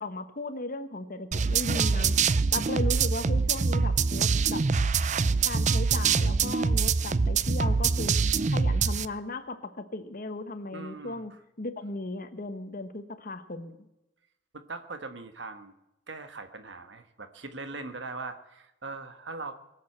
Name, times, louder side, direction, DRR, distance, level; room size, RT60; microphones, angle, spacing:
voice 1, 0.0-2.2 2.5-4.6 5.4-8.2 8.5-11.3 11.6-13.8, left 2 dB, 50° left, 10 dB, 1.2 m, -36 dB
sound 1, 1.3-9.1, right 5 dB, 40° right, 0.5 m, -24 dB
voice 2, 10.7-11.2 14.5-15.7 16.1-19.5, right 3 dB, 75° right, 8 dB, 1.5 m, -40 dB
22.5 x 8.1 x 7.9 m, 0.89 s
head